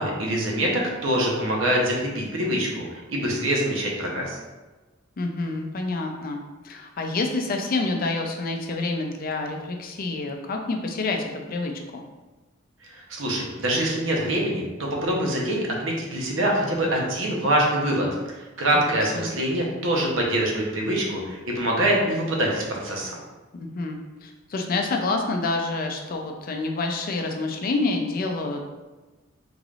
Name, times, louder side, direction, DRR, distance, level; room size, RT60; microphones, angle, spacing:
voice 1, 0.0-4.4 12.9-23.2, right 1 dB, 75° right, -2 dB, 0.8 m, -25 dB
voice 2, 5.2-12.0 18.7-19.3 23.5-28.6, left 3 dB, 45° left, 3 dB, 0.4 m, -28 dB
3.8 x 3.2 x 2.4 m, 1.2 s
head